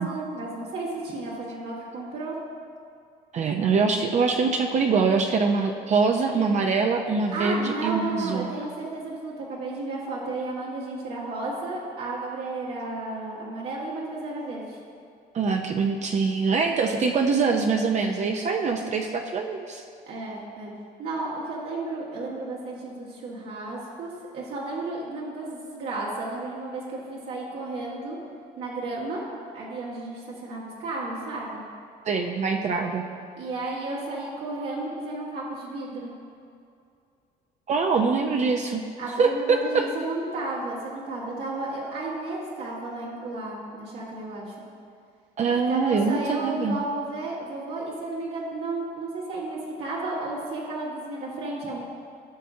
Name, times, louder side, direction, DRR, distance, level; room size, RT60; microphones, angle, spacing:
voice 1, 0.0-2.4 7.3-14.8 20.1-20.7 21.0-28.2 28.6-29.2 29.5-31.6 33.4-36.1 39.0-44.5 45.5-51.8, right 2 dB, 75° right, -6 dB, 1.8 m, -33 dB
voice 2, 3.3-8.5 15.3-19.8 32.0-33.1 37.7-38.8 39.2-39.9 45.4-46.8, right 4 dB, 45° right, 3 dB, 0.6 m, -24 dB
16.0 x 6.1 x 2.8 m, 2.4 s
cardioid pair, 110°, 17 cm